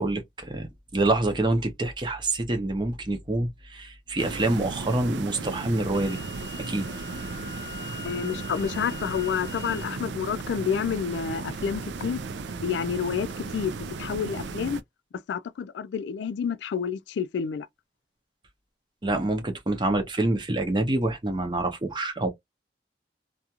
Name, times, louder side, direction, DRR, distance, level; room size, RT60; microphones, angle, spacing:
voice 1, 0.0-6.2 6.7-6.9 19.0-22.3, right 2 dB, 25° right, 0.6 m, -26 dB
sound 1, 4.2-14.8, right 4 dB, 85° right, 0.4 m, -35 dB
Wind instrument woodwind instrument, 5.9-9.9, left 6 dB, 15° left, 0.6 m, -43 dB
voice 2, 8.0-12.2 12.6-14.8 15.3-17.7, left 7 dB, 85° left, 0.3 m, -29 dB
2.4 x 2.3 x 2.8 m
head